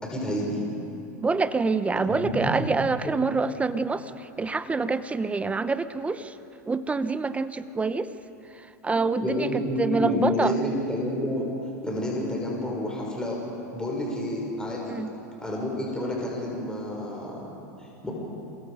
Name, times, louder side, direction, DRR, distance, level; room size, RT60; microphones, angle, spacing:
voice 1, 0.0-0.6 2.1-2.7 9.2-11.5 11.8-13.4 13.7-14.9 15.4-18.1, equal, 10° left, -3 dB, 6.1 m, -29 dB
voice 2, 1.2-6.3 6.7-8.1 8.8-9.5 9.8-10.6 14.9-15.1, right 4 dB, 15° right, 13 dB, 0.8 m, -26 dB
27.5 x 24.0 x 5.1 m, 2.8 s
hypercardioid pair, 105°, 9 cm